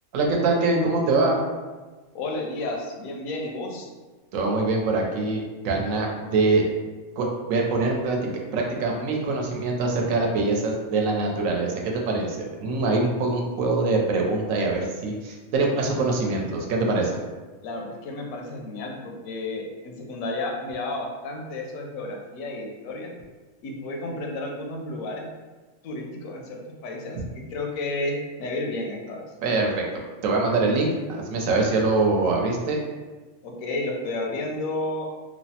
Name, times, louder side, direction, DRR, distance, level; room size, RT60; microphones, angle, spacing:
voice 1, 0.1-1.4 4.3-6.6 7.2-17.2 29.4-29.8 30.2-32.8, right 3 dB, 75° right, 0 dB, 0.9 m, -24 dB
voice 2, 2.1-3.9 17.6-23.1 23.6-25.3 25.8-29.2 33.4-35.1, left 2 dB, 80° left, 0 dB, 1.0 m, -32 dB
3.1 x 2.0 x 2.7 m, 1.3 s
omnidirectional pair, 1.4 m